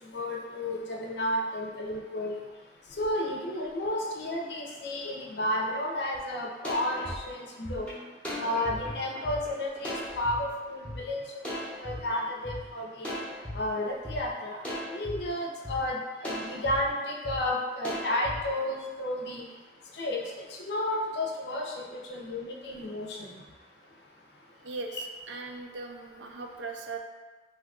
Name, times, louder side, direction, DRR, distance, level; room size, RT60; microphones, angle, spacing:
voice 1, 0.1-2.4 3.0-7.9 8.4-11.2 11.8-13.1 13.5-14.6 14.9-19.4 20.0-20.2 20.6-23.3, left 1 dB, 65° left, -1 dB, 0.5 m, -32 dB
sound 1, 6.1-6.2 6.6-10.4 10.8-11.0 11.4-12.6 13.0-13.6 14.0-14.2 14.6-15.2 15.6-15.8 16.2-16.8 17.2-17.4 17.8-18.4, equal, 5° left, 0.6 m, -37 dB
voice 2, 24.6-27.0, right 3 dB, 85° right, 4 dB, 0.4 m, -39 dB
2.7 x 2.3 x 3.6 m, 1.3 s
head